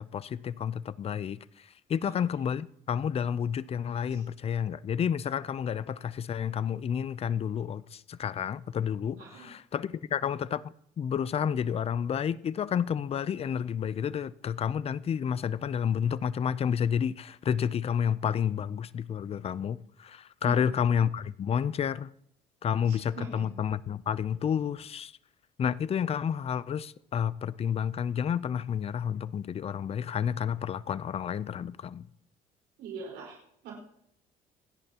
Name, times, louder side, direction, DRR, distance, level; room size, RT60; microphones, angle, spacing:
voice 1, 0.0-22.1 22.6-25.1 25.6-32.1, left 8 dB, 35° left, 0.5 m, -30 dB
voice 2, 9.2-9.5 20.4-20.7 22.9-23.5 32.8-33.4 33.6-33.8, right 5 dB, 85° right, 4.7 m, -42 dB
27.0 x 10.5 x 2.9 m
cardioid pair, 110°, 17 cm